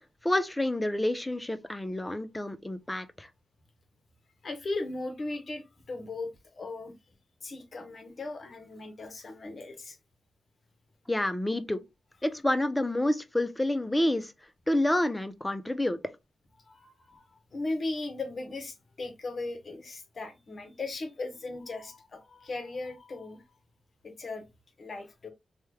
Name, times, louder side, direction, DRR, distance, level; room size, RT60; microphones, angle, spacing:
voice 1, 0.2-3.3 11.1-11.8 12.2-14.3 14.7-16.0, left 1 dB, 15° left, 0.5 m, -28 dB
voice 2, 4.4-6.9 7.4-10.0 16.6-23.4 24.0-24.4 24.8-25.3, left 2 dB, 55° left, 0.9 m, -37 dB
3.1 x 2.2 x 3.1 m
cardioid pair, 60°, 0 cm